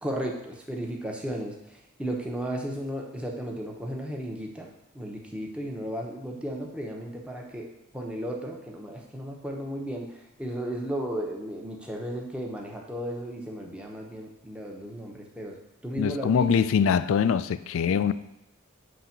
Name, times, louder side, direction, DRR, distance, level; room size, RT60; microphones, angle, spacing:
voice 1, 0.0-4.7 4.9-7.7 7.9-15.6 15.8-16.7, right 1 dB, 5° right, 0.8 m, -34 dB
voice 2, 16.0-18.1, left 7 dB, 70° left, 0.3 m, -23 dB
7.6 x 3.4 x 5.7 m
head